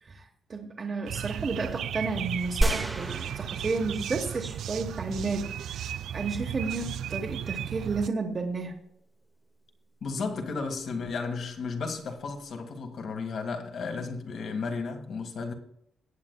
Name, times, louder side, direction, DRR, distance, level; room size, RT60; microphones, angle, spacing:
voice 1, 0.5-8.7, right 3 dB, 30° right, 1.1 m, -32 dB
sound 1, 1.1-8.1, right 10 dB, 70° right, 0.3 m, -35 dB
sound 2, 2.6-4.4 4.9-5.0, right 1 dB, 10° right, 0.8 m, -30 dB
voice 2, 10.0-15.5, left 4 dB, 55° left, 1.6 m, -33 dB
18.0 x 8.0 x 2.2 m
cardioid pair, 130°, 0 cm